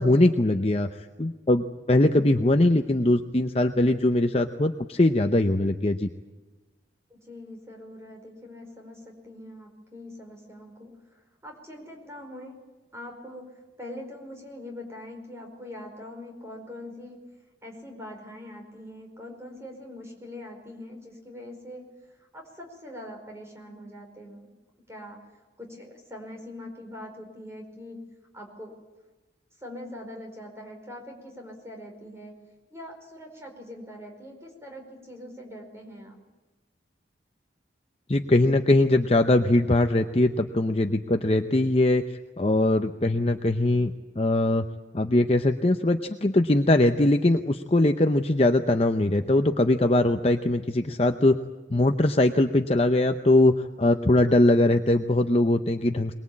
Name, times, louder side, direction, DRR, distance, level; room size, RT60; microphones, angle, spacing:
voice 1, 0.0-6.1 38.1-44.6 44.9-51.4 51.7-53.5 53.8-56.1, left 1 dB, 30° left, 7 dB, 0.7 m, -21 dB
voice 2, 7.1-12.6 12.9-17.2 17.6-24.5 24.9-25.2 25.6-28.7 29.6-32.3 32.7-36.2, left 1 dB, 15° right, 1 dB, 4.9 m, -43 dB
23.0 x 21.0 x 8.6 m, 1.2 s
head